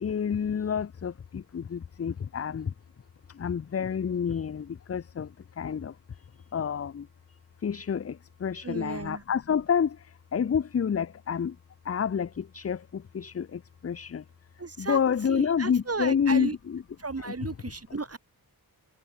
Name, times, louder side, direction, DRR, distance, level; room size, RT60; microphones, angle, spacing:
voice 1, 0.0-2.7 3.3-5.3 5.6-5.9 6.5-7.1 7.6-10.1 10.3-11.6 11.9-14.2 14.8-16.8 17.2-17.5, left 7 dB, 40° left, 0.5 m, -29 dB
voice 2, 8.6-9.2 14.6-15.0 15.3-16.5 17.0-18.2, right 4 dB, 40° right, 1.5 m, -34 dB
wide cardioid pair, 55°, 37 cm